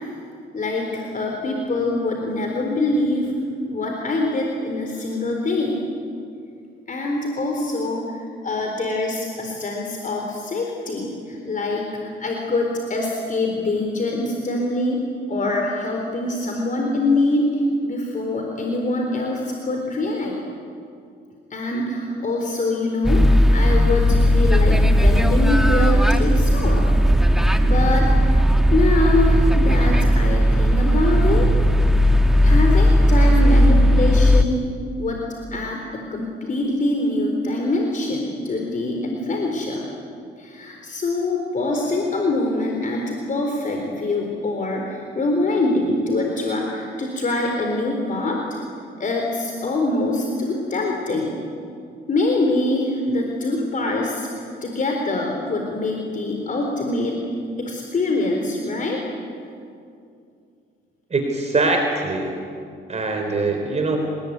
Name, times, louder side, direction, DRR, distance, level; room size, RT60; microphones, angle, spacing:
voice 1, 0.5-3.3 3.7-5.8 6.9-15.0 15.3-20.4 21.5-26.9 27.6-28.1 28.7-31.5 32.4-34.6 35.0-35.2 35.5-39.8 40.4-48.4 49.0-51.4 52.1-54.3 54.6-57.2 57.6-59.0, left 2 dB, 40° left, 1 dB, 4.1 m, -24 dB
sound 1, 23.0-34.4, equal, ahead, 1.7 m, -16 dB
voice 2, 61.1-62.3 62.9-64.0, right 3 dB, 35° right, 3 dB, 3.9 m, -22 dB
29.0 x 20.0 x 9.7 m, 2.4 s
cardioid pair, 90°, 20 cm